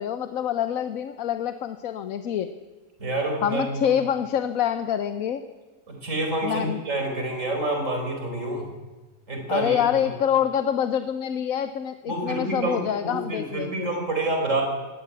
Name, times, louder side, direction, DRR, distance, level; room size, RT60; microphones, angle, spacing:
voice 1, 0.0-2.5 3.4-5.4 6.4-6.8 9.5-13.9, left 9 dB, 80° left, 9 dB, 1.2 m, -26 dB
voice 2, 3.0-3.8 5.9-8.7 9.3-9.8 12.1-14.6, right 2 dB, 65° right, 3 dB, 4.9 m, -28 dB
18.0 x 16.0 x 9.6 m, 1.3 s
omnidirectional pair, 1.4 m